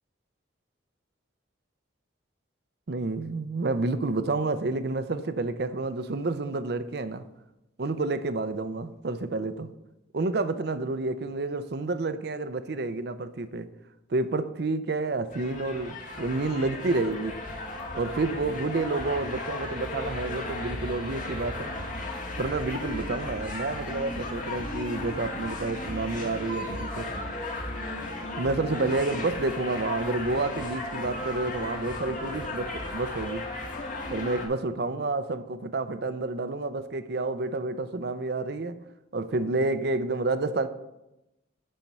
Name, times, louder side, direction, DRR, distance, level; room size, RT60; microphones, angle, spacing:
voice 1, 2.9-7.2 7.8-9.7 10.1-13.7 14.1-17.4 17.9-21.7 22.4-27.1 28.4-33.5 34.1-38.8 39.1-40.7, right 3 dB, 55° right, 0.6 m, -29 dB
sound 1, 15.3-34.5, left 2 dB, 45° left, 1.6 m, -35 dB
12.0 x 4.4 x 5.4 m
head